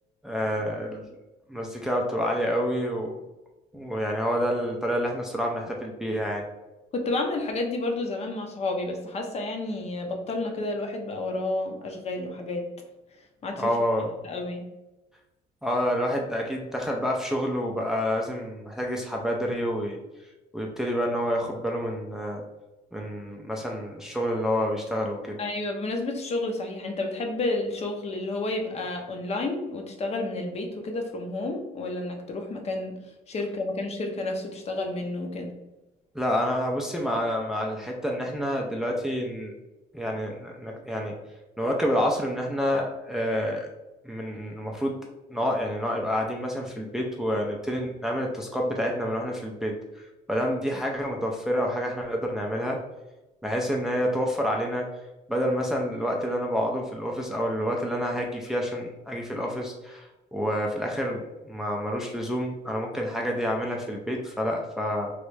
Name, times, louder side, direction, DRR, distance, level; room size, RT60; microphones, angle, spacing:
voice 1, 0.2-1.1 1.5-3.2 3.7-6.4 13.6-14.1 15.6-20.0 20.5-22.4 22.9-25.4 36.1-39.5 39.9-41.2 41.6-43.7 44.0-45.0 45.3-52.8 53.4-54.9 55.3-65.1, equal, 5° right, 0 dB, 0.4 m, -28 dB
voice 2, 6.9-12.7 13.4-13.7 14.2-14.6 25.4-33.0 33.3-35.5, left 2 dB, 40° left, 3 dB, 0.7 m, -30 dB
3.1 x 2.5 x 3.2 m, 1.0 s
cardioid pair, 110°, 17 cm